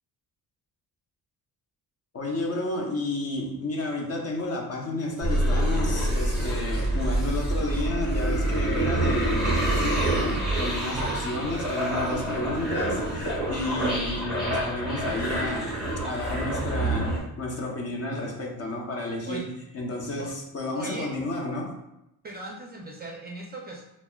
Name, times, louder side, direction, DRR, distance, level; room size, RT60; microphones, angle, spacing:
voice 1, 2.1-15.7 16.0-21.7, left 2 dB, 40° left, 0 dB, 0.7 m, -31 dB
sound 1, 5.2-17.2, right 1 dB, ahead, 1.3 m, -27 dB
voice 2, 10.9-11.3 19.3-19.5 20.2-20.3 20.7-21.1 22.2-23.8, right 2 dB, 25° right, -1 dB, 0.4 m, -38 dB
5.7 x 2.1 x 2.3 m, 0.86 s
cardioid pair, 125°, 39 cm